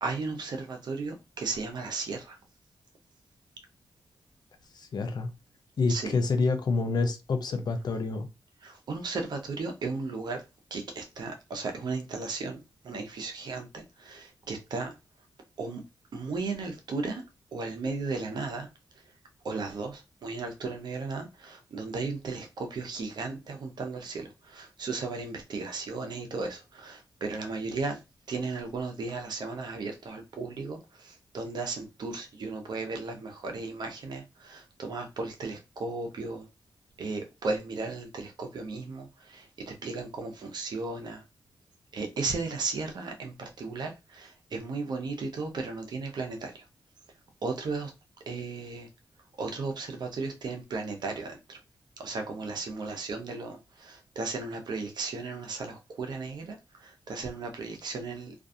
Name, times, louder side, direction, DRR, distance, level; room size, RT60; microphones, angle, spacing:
voice 1, 0.0-2.2 5.9-6.0 8.9-10.4 10.7-12.6 12.9-13.8 14.1-14.2 14.5-14.9 15.6-15.8 16.1-17.2 17.5-18.7 19.4-19.9 20.2-21.3 21.7-24.3 24.6-28.0 28.3-30.8 31.3-34.2 34.5-36.4 37.0-39.1 39.8-41.2 41.9-43.3 43.6-43.9 44.5-46.5 47.4-47.9 48.3-48.9 49.4-51.3 52.0-53.5 54.2-56.5 57.1-58.3, right 3 dB, 70° right, 0.8 m, -35 dB
voice 2, 4.7-5.3 5.8-8.3, left 3 dB, 65° left, 0.5 m, -28 dB
2.5 x 2.3 x 2.6 m
cardioid pair, 50°, 8 cm